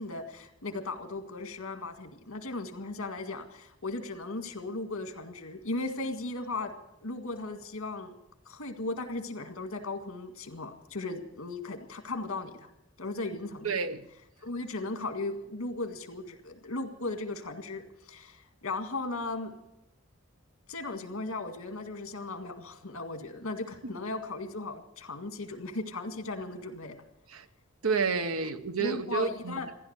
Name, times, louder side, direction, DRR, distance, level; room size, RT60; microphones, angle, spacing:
voice 1, 0.0-6.7 7.0-8.2 8.5-12.7 13.0-13.8 14.4-19.5 20.7-27.0 28.8-29.7, left 2 dB, 90° left, 1.9 m, -37 dB
voice 2, 13.6-14.0 27.3-27.4 27.8-29.7, right 5 dB, 85° right, 1.0 m, -30 dB
15.0 x 11.0 x 8.1 m
head